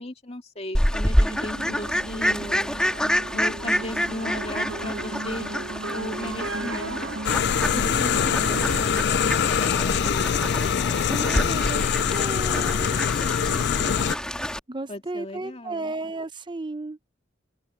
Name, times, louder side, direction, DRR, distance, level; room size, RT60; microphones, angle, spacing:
voice 1, 0.0-2.7 3.3-5.6 5.9-7.2 7.7-10.5 14.9-15.9, left 1 dB, 35° left, 2.5 m, -36 dB
Fowl, 0.7-14.6, equal, 5° left, 1.7 m, -28 dB
sound 1, 1.3-8.9, right 2 dB, 80° right, 1.0 m, -35 dB
sound 2, 7.2-14.2, left 7 dB, 60° left, 0.4 m, -24 dB
voice 2, 11.1-13.1 14.7-17.0, right 2 dB, 25° right, 0.7 m, -34 dB
open air
head